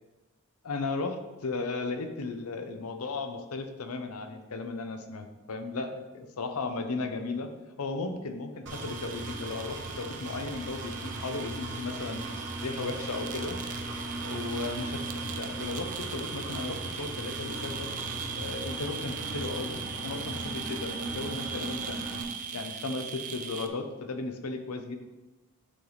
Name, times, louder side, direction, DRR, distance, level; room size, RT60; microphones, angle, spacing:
voice 1, 0.6-7.5 7.8-12.2 12.6-13.6 14.2-17.9 18.4-22.1 22.5-25.0, left 3 dB, 90° left, 7 dB, 0.7 m, -35 dB
sound 1, 8.7-23.7, right 7 dB, 35° right, 0.4 m, -40 dB
Engine, 8.7-22.2, right 1 dB, 55° right, 1.1 m, -38 dB
9.8 x 3.4 x 4.0 m, 1.1 s
head